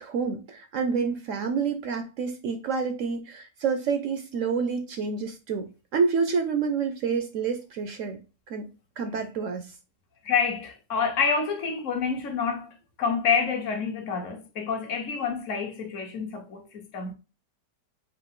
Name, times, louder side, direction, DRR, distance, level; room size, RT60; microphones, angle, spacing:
voice 1, 0.0-5.7 5.9-8.2 8.5-8.6 9.0-9.7, right 5 dB, 70° right, 0.7 m, -28 dB
voice 2, 10.2-17.1, left 5 dB, 55° left, 0.9 m, -28 dB
3.9 x 2.5 x 3.6 m
omnidirectional pair, 1.8 m